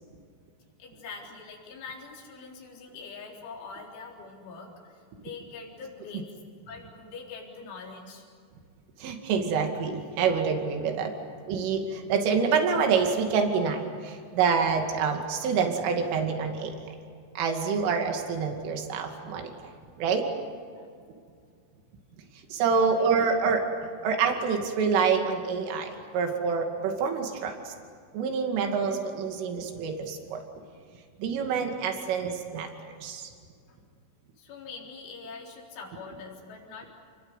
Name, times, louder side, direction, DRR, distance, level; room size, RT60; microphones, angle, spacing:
voice 1, 0.8-6.3 6.7-8.3 20.8-20.9 22.6-23.1 33.7-33.8 34.4-36.9, left 4 dB, 75° left, -2 dB, 6.5 m, -44 dB
voice 2, 9.0-11.1 11.5-16.8 17.4-19.5 20.0-20.3 22.5-23.6 24.0-27.7 28.1-30.4 31.2-32.7 33.0-33.3, right 5 dB, 85° right, 3 dB, 4.9 m, -27 dB
29.5 x 21.5 x 8.2 m, 2.1 s
omnidirectional pair, 5.6 m